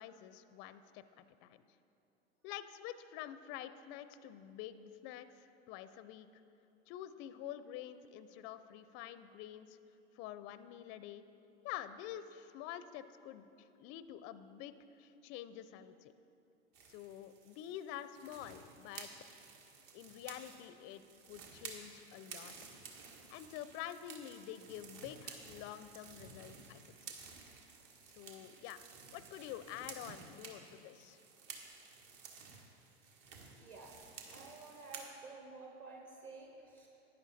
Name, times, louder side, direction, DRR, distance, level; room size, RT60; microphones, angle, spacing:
voice 1, 0.0-1.6 2.4-6.3 6.9-9.8 10.1-11.2 11.6-16.1 16.9-19.1 19.9-21.0 21.3-22.5 23.3-26.8 28.1-28.8 29.1-31.2, left 11 dB, 35° left, 13 dB, 0.4 m, -48 dB
sound 1, 16.7-35.1, right 5 dB, 55° right, 1.7 m, -53 dB
voice 2, 33.6-33.9 34.3-36.9, right 3 dB, 35° right, 0 dB, 1.2 m, -52 dB
11.0 x 9.7 x 4.1 m, 2.8 s
hypercardioid pair, 110°, 33 cm